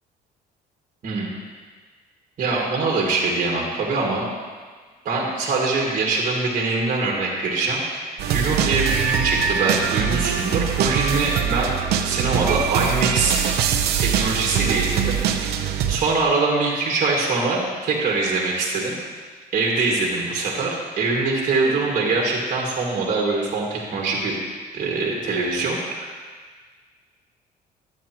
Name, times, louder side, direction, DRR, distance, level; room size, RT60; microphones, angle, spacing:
voice 1, 2.4-4.3 5.1-11.7 12.0-13.4 14.0-15.5 15.9-19.0 19.5-24.4 24.7-26.1, right 3 dB, 50° right, -2 dB, 1.9 m, -23 dB
sound 1, 8.2-16.0, right 8 dB, 75° right, 0.7 m, -23 dB
11.0 x 8.8 x 3.0 m, 1.5 s
cardioid pair, 110°, 17 cm